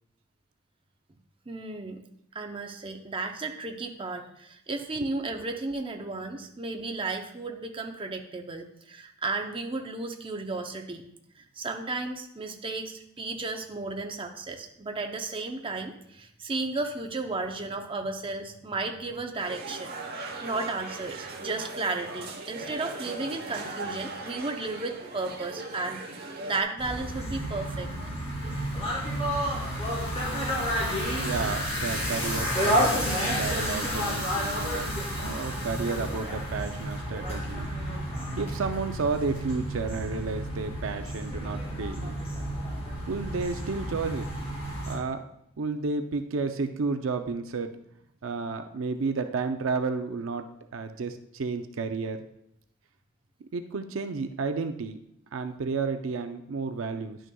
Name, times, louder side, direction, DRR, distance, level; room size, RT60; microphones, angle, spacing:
voice 1, 1.5-2.0 2.3-11.0 11.4-28.1 28.4-28.7 29.8-31.6 33.4-33.7 35.3-35.5 37.1-37.4, right 3 dB, 25° right, 3 dB, 0.7 m, -34 dB
sound 1, 19.4-26.6, right 2 dB, 50° right, 0.9 m, -39 dB
sound 2, 26.8-44.9, equal, 30° left, 2.8 m, -30 dB
voice 2, 31.2-33.1 33.4-37.7 38.4-42.2 43.1-44.3 44.9-45.2 45.6-47.7 48.2-50.5 50.7-52.2 53.4-55.0 55.3-57.2, right 4 dB, 70° right, 7 dB, 0.5 m, -32 dB
11.0 x 6.3 x 2.3 m, 0.75 s
head